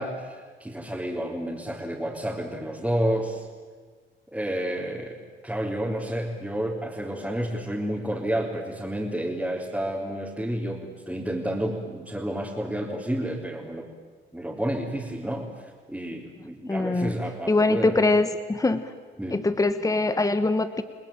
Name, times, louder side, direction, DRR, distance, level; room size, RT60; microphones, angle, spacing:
voice 1, 0.0-3.5 4.3-5.2 5.4-13.9 14.3-18.2 19.2-19.4, right 1 dB, 5° right, -4 dB, 4.1 m, -30 dB
voice 2, 16.7-17.1 17.5-18.8 19.3-20.8, left 2 dB, 15° left, 11 dB, 1.3 m, -23 dB
30.0 x 19.0 x 9.0 m, 1.5 s
cardioid pair, 90°, 20 cm